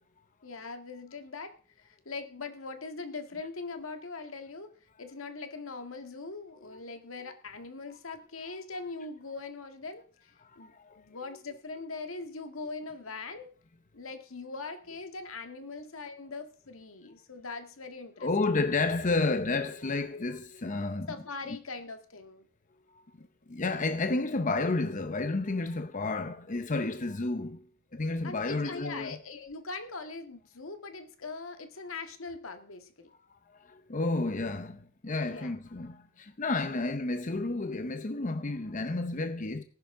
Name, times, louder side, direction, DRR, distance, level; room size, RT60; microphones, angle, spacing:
voice 1, 0.4-4.7 5.0-13.5 13.9-18.3 21.1-22.5 28.2-33.1 35.2-35.5 36.7-37.0, left 3 dB, 85° left, 1.8 m, -41 dB
voice 2, 10.4-11.0 18.2-21.1 23.2-27.7 27.9-29.2 33.6-39.6, left 3 dB, 40° left, 0.8 m, -31 dB
18.5 x 10.5 x 3.7 m
head